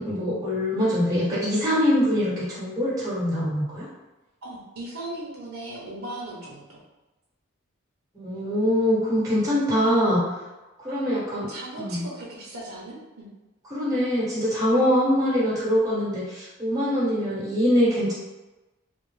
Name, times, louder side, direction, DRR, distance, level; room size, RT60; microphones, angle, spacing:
voice 1, 0.0-3.9 8.1-10.3 10.8-11.5 11.8-12.0 13.7-18.1, equal, 15° right, -9 dB, 1.3 m, -23 dB
voice 2, 4.4-6.8 10.9-11.0 11.5-13.3, right 1 dB, 80° right, -4 dB, 0.7 m, -37 dB
3.5 x 2.1 x 3.1 m, 1.1 s
head